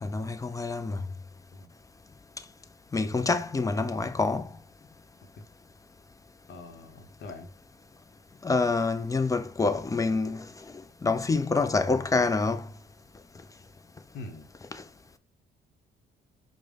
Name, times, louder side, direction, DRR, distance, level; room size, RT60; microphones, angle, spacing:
voice 1, 0.0-1.0 2.9-4.5 8.4-10.5 11.0-12.7 14.7-14.8, left 3 dB, 15° left, 0.3 m, -26 dB
voice 2, 6.5-7.5 14.1-14.5, left 2 dB, 60° left, 0.8 m, -43 dB
5.0 x 2.1 x 3.3 m
cardioid pair, 90°, 20 cm